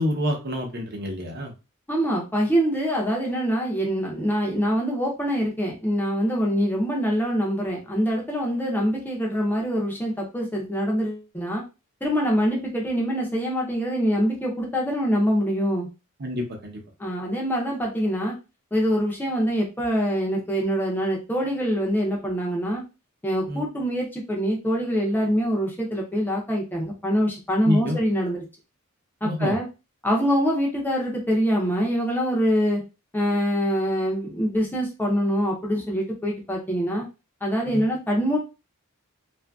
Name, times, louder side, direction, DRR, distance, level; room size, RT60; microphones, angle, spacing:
voice 1, 0.0-1.5 16.2-16.8 23.5-23.6 27.6-28.0 29.2-29.6 37.7-37.8, left 1 dB, 50° right, 2 dB, 0.8 m, -27 dB
voice 2, 1.9-11.6 12.0-15.9 17.0-18.4 18.7-22.8 23.2-28.4 29.2-29.7 30.0-32.8 33.1-37.1 37.4-38.4, equal, 10° left, -2 dB, 0.6 m, -24 dB
2.7 x 2.5 x 2.3 m, 0.28 s
head